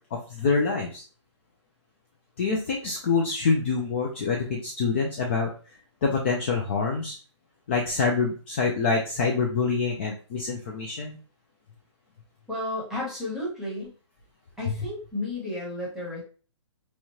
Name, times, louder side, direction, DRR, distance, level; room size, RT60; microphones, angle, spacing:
voice 1, 0.3-1.0 2.4-5.5 6.0-7.2 7.7-11.2, left 4 dB, 25° left, -1 dB, 0.4 m, -26 dB
voice 2, 12.5-13.9 14.6-16.2, left 1 dB, 5° right, -5 dB, 1.0 m, -32 dB
4.1 x 2.4 x 3.0 m, 0.37 s
hypercardioid pair, 165°, 16 cm